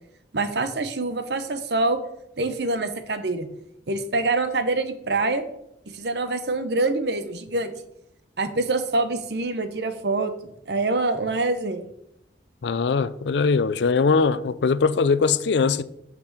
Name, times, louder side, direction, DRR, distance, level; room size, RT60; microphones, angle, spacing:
voice 1, 0.3-2.0 2.4-3.5 3.9-5.4 5.9-7.7 8.4-10.3 10.7-11.8, right 2 dB, 65° right, 0.8 m, -25 dB
voice 2, 12.6-15.8, left 4 dB, 75° left, 0.4 m, -21 dB
6.1 x 5.9 x 6.6 m
head